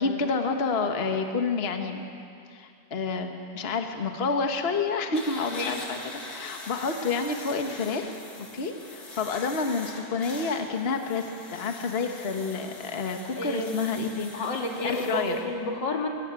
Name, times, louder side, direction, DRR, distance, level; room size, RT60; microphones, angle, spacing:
voice 1, 0.0-2.0 2.5-8.2 8.5-14.3 14.8-15.4, left 4 dB, 35° left, 4 dB, 1.5 m, -29 dB
sound 1, 5.1-15.4, left 2 dB, 55° left, 3.1 m, -43 dB
voice 2, 13.4-13.9 14.3-16.1, left 2 dB, 80° left, 1 dB, 2.9 m, -30 dB
23.0 x 18.5 x 9.0 m, 2.5 s
omnidirectional pair, 1.9 m